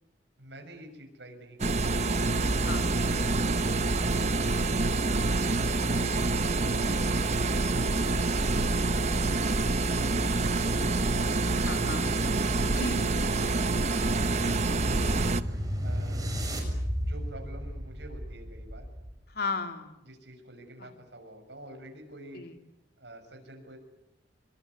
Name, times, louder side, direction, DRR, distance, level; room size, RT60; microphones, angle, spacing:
voice 1, 0.4-2.1 15.8-16.4 17.0-18.9 20.0-22.5 23.0-23.8, right 1 dB, 75° right, 4 dB, 6.4 m, -48 dB
sound 1, 1.6-15.4, right 3 dB, 40° right, 1.1 m, -27 dB
voice 2, 2.6-3.3 11.6-12.0 12.7-13.1 19.3-20.0 20.8-20.9 22.3-22.5, left 3 dB, 65° left, 6 dB, 3.1 m, -36 dB
sound 2, 13.7-19.3, equal, 20° right, 7.0 m, -34 dB
25.0 x 23.5 x 9.8 m, 0.84 s
head